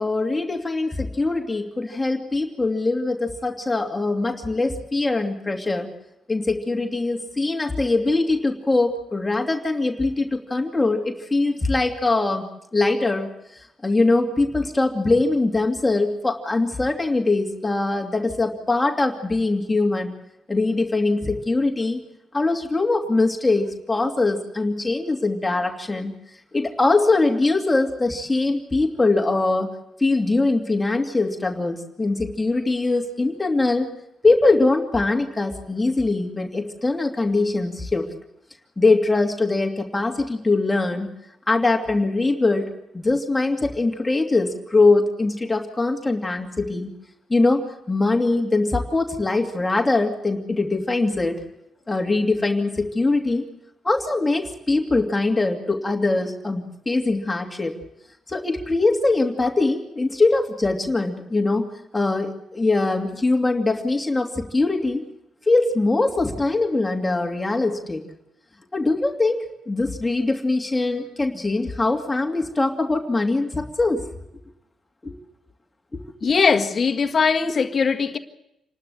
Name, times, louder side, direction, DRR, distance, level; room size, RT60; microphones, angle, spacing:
voice 1, 0.0-5.9 6.3-12.5 12.7-20.1 20.5-22.0 22.3-26.1 26.5-29.7 30.0-33.9 34.2-38.1 38.8-41.1 41.5-46.9 47.3-51.3 51.9-53.5 53.8-57.7 58.3-61.7 61.9-65.1 65.5-68.0 68.7-74.0 75.0-75.1 75.9-76.0, left 3 dB, 20° left, 2.6 m, -22 dB
voice 2, 76.2-78.2, left 5 dB, 50° left, 1.7 m, -20 dB
27.5 x 12.5 x 8.6 m
supercardioid pair, 65°, 0 cm